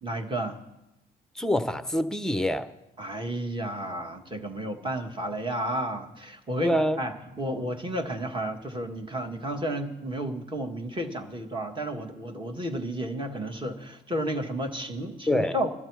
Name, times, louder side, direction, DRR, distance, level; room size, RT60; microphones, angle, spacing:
voice 1, 0.0-0.6 3.0-15.7, right 1 dB, 25° right, 4 dB, 1.6 m, -32 dB
voice 2, 1.4-2.7 6.6-7.0 15.3-15.6, left 1 dB, 5° left, 11 dB, 0.7 m, -25 dB
15.0 x 12.0 x 4.7 m, 0.93 s
cardioid pair, 90°, 20 cm